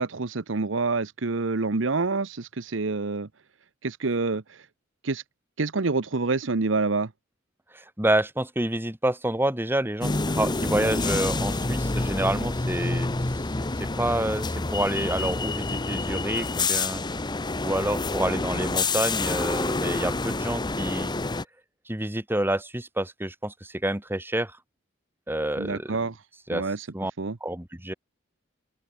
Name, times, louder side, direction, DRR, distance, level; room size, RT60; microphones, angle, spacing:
voice 1, 0.0-3.3 3.8-4.6 5.0-5.2 5.6-7.1 25.6-26.1 26.5-26.9 27.2-27.4, right 3 dB, 70° right, 0.9 m, -27 dB
voice 2, 7.7-13.1 13.8-17.0 17.6-21.1 21.9-24.5 25.3-26.0 26.5-26.6 26.9-27.1 27.4-27.9, right 1 dB, 10° right, 1.7 m, -28 dB
sound 1, 10.0-21.4, left 3 dB, 20° left, 0.8 m, -28 dB
open air
head